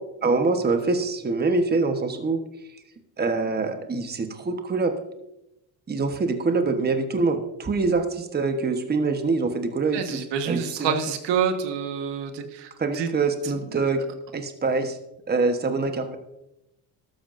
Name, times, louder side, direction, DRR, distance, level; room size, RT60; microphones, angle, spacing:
voice 1, 0.2-2.4 3.2-4.9 5.9-10.9 12.8-14.0 14.3-15.0 15.3-16.2, right 3 dB, 20° right, 7 dB, 1.2 m, -24 dB
voice 2, 9.9-13.1 13.7-13.8, right 7 dB, 70° right, 7 dB, 1.5 m, -27 dB
13.5 x 12.5 x 2.6 m, 0.88 s
cardioid pair, 100°, 44 cm